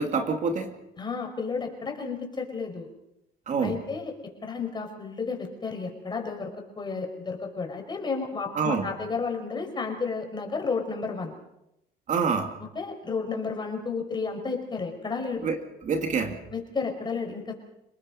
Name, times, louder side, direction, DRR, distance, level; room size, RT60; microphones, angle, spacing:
voice 1, 0.0-0.8 3.5-3.8 8.5-8.9 12.1-12.6 15.4-16.4, right 5 dB, 45° right, 5 dB, 2.5 m, -27 dB
voice 2, 1.0-2.9 3.6-4.1 4.4-6.5 6.8-11.3 12.6-15.5 16.5-17.5, left 4 dB, 25° left, 3 dB, 5.6 m, -32 dB
29.5 x 19.5 x 5.6 m, 0.85 s
cardioid pair, 110°, 17 cm